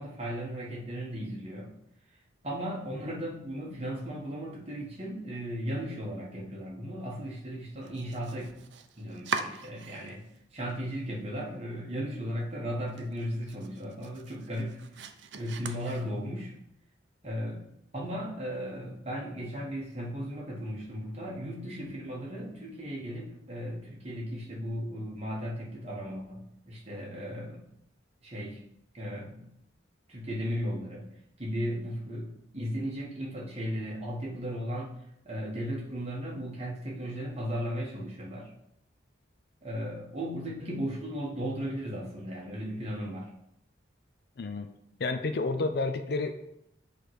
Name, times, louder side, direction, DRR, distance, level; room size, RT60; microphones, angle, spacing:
voice 1, 0.0-1.7 2.4-8.5 9.0-10.2 10.5-14.9 15.4-16.5 17.2-27.6 28.2-28.6 28.9-29.5 30.1-31.1 31.4-34.9 35.2-38.5 39.6-43.3, equal, 35° right, -3 dB, 1.5 m, -36 dB
Domestic sounds home sounds, 7.8-10.4 10.7-11.4 11.8-11.9 12.3-12.4 12.8-16.5, right 5 dB, 65° right, 0.5 m, -41 dB
voice 2, 44.4-44.7 45.0-46.3, left 3 dB, 55° left, 8 dB, 0.5 m, -30 dB
8.6 x 3.2 x 4.7 m, 0.79 s
head